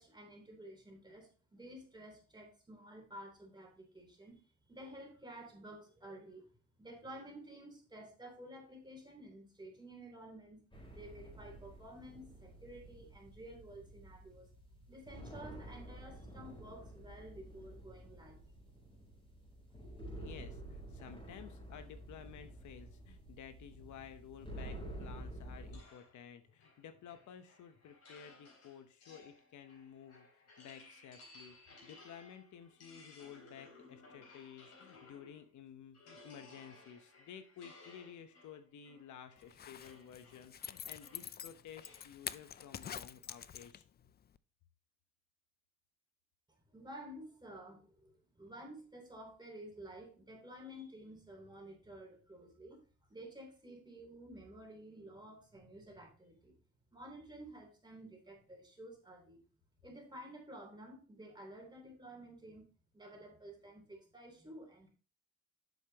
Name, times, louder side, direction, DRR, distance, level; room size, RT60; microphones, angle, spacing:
voice 1, 0.0-4.4 4.7-6.5 6.8-10.6 10.9-14.5 14.9-18.4 46.7-52.8 53.1-56.5 56.9-59.4 59.8-62.7 62.9-64.9, right 1 dB, 15° right, 1 dB, 3.3 m, -52 dB
sound 1, 10.7-25.8, right 1 dB, 15° left, 4.1 m, -50 dB
voice 2, 20.1-43.8, left 8 dB, 75° left, 9 dB, 0.9 m, -53 dB
sound 2, 25.7-35.5 35.9-42.2, left 3 dB, 55° left, 4.3 m, -60 dB
Zipper (clothing), 39.4-44.0 44.4-44.5, left 9 dB, 35° left, 0.4 m, -46 dB
8.0 x 6.5 x 2.9 m, 0.37 s
cardioid pair, 90°, 30 cm